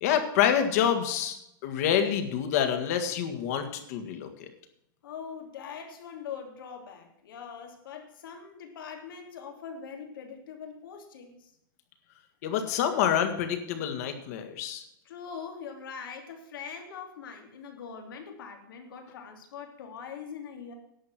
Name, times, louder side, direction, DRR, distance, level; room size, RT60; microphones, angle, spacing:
voice 1, 0.0-1.4 1.6-4.5 12.4-14.8, left 9 dB, 45° left, 7 dB, 1.8 m, -27 dB
voice 2, 5.0-11.5 15.0-20.7, left 6 dB, 85° left, 3 dB, 3.0 m, -42 dB
11.0 x 7.7 x 7.4 m, 0.78 s
supercardioid pair, 175°, 11 cm